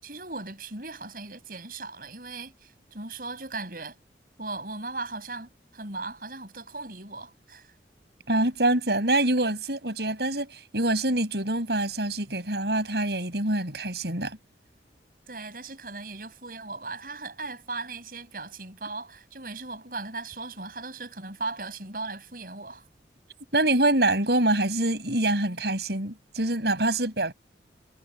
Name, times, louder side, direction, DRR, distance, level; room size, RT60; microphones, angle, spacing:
voice 1, 0.0-4.0 4.4-7.7 15.3-22.9, right 3 dB, 55° right, 7.4 m, -38 dB
voice 2, 8.3-14.4 23.5-27.3, right 2 dB, 70° right, 6.2 m, -25 dB
head